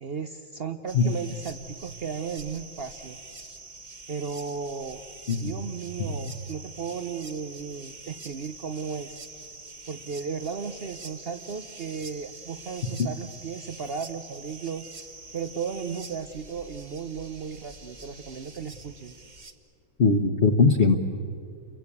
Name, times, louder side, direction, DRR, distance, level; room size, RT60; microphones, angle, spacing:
voice 1, 0.0-3.2 4.1-5.0 5.4-9.2 9.9-14.9 15.3-19.1, right 6 dB, 80° right, 9 dB, 0.5 m, -35 dB
sound 1, 0.9-19.5, right 3 dB, 30° right, 1.1 m, -45 dB
voice 2, 20.0-20.9, left 4 dB, 40° left, 3 dB, 1.2 m, -20 dB
29.5 x 22.5 x 8.5 m, 2.4 s
omnidirectional pair, 2.1 m